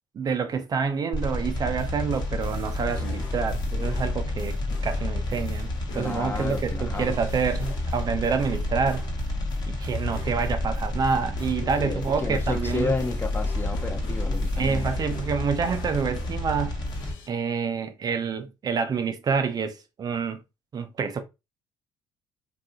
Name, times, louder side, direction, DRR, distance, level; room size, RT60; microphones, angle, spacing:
voice 1, 0.1-9.0 9.7-12.9 14.6-16.8 17.3-20.4 20.7-21.2, right 6 dB, 40° right, 0.4 m, -28 dB
sound 1, 1.1-17.1, left 1 dB, 45° left, 1.0 m, -30 dB
sound 2, 1.8-17.3, left 4 dB, 65° left, 0.7 m, -48 dB
voice 2, 5.9-7.2 11.8-14.9, left 3 dB, 20° left, 0.6 m, -32 dB
2.7 x 2.3 x 2.6 m
hypercardioid pair, 65°, 10 cm